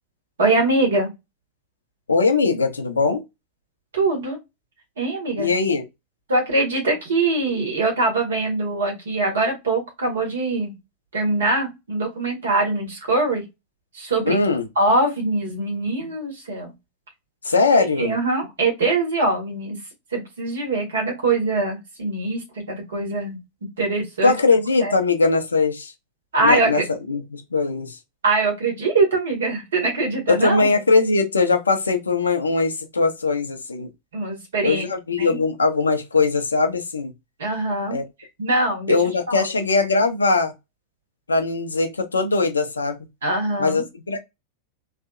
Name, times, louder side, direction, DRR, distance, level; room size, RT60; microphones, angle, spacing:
voice 1, 0.4-1.1 3.9-4.4 5.0-5.5 6.3-10.7 11.1-13.4 13.9-14.3 14.8-16.7 18.0-19.8 20.1-23.4 23.8-24.3 24.8-24.9 26.3-26.9 28.2-30.7 34.1-34.9 35.2-35.4 37.4-38.0 38.4-39.0 39.3-39.4 43.2-43.8, right 2 dB, 65° right, 1.6 m, -22 dB
voice 2, 2.1-3.2 5.4-5.9 14.2-14.7 17.4-18.1 24.2-25.9 26.4-26.8 27.1-28.0 30.3-33.9 34.6-37.1 37.9-38.0 38.9-40.5 41.3-43.0 43.6-44.2, left 3 dB, 75° left, 0.7 m, -20 dB
3.2 x 2.7 x 2.4 m
figure-of-eight pair, 90°, 0 cm